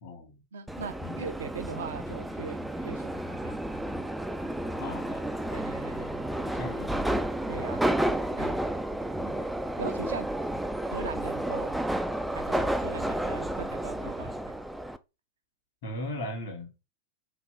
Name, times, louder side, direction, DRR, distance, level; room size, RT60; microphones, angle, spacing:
voice 1, 0.0-0.4 1.0-1.3 4.8-5.5 6.4-7.3 15.8-16.7, left 1 dB, 55° left, 1.6 m, -39 dB
voice 2, 0.5-3.8 5.5-6.3 7.5-7.9 8.4-8.6 9.2-9.5 9.8-10.3 10.9-11.8 12.3-14.3, right 6 dB, 65° right, 0.6 m, -40 dB
Subway metro underground, 0.7-15.0, right 1 dB, 5° right, 0.3 m, -31 dB
3.5 x 2.9 x 3.2 m
figure-of-eight pair, 90°, 0 cm